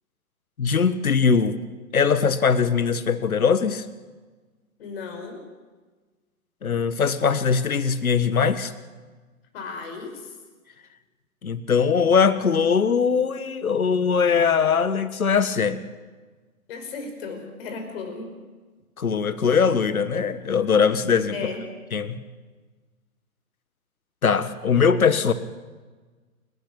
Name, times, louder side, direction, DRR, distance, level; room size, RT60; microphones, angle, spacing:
voice 1, 0.6-1.6 1.9-3.8 6.6-8.7 11.4-15.8 19.0-21.3 21.9-22.2 24.2-25.3, left 6 dB, 70° left, 14 dB, 1.6 m, -21 dB
voice 2, 4.8-5.4 9.5-10.4 16.7-18.3 21.3-21.7, left 4 dB, 40° left, 5 dB, 5.3 m, -35 dB
28.5 x 12.5 x 9.1 m, 1.4 s
figure-of-eight pair, 130°, 44 cm